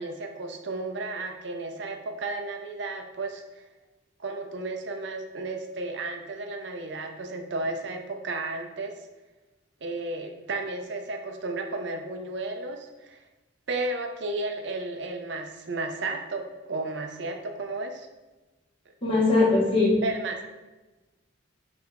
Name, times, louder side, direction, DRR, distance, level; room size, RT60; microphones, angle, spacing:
voice 1, 0.0-3.6 4.2-8.9 9.8-13.2 13.7-18.1 20.0-20.4, right 2 dB, 60° right, 5 dB, 0.5 m, -33 dB
voice 2, 19.0-19.9, left 3 dB, 30° left, -7 dB, 1.1 m, -20 dB
4.4 x 3.2 x 3.6 m, 1.1 s
head